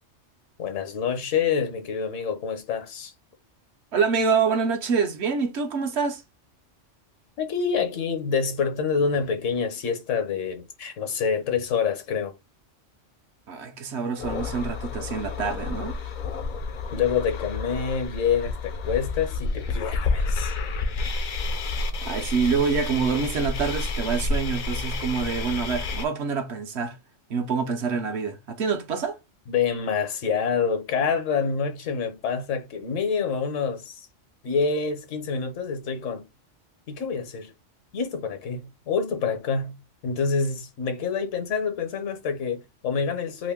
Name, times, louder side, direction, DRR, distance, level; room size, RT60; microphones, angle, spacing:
voice 1, 0.6-3.1 7.4-12.3 16.9-20.5 29.5-34.1 34.4-36.3 36.9-37.5 37.9-43.5, left 6 dB, 80° left, 1.2 m, -27 dB
voice 2, 3.9-6.2 13.5-16.0 22.0-27.0 27.3-29.2, right 5 dB, 65° right, 0.9 m, -26 dB
sound 1, 14.2-26.0, left 3 dB, 60° left, 0.5 m, -30 dB
2.9 x 2.5 x 3.5 m
omnidirectional pair, 1.3 m